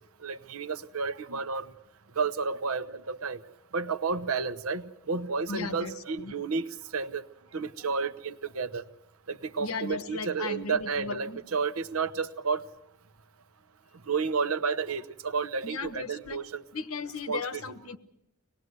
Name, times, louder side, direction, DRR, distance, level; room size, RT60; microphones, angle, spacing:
voice 1, 0.2-1.7 2.2-3.4 3.7-7.2 7.5-8.8 9.3-12.6 14.1-16.6 17.3-17.4, right 5 dB, 90° right, 13 dB, 1.0 m, -31 dB
voice 2, 5.5-6.3 9.6-11.4 15.6-16.4 16.7-18.0, left 4 dB, 85° left, 12 dB, 1.3 m, -36 dB
24.5 x 19.5 x 8.0 m, 0.82 s
head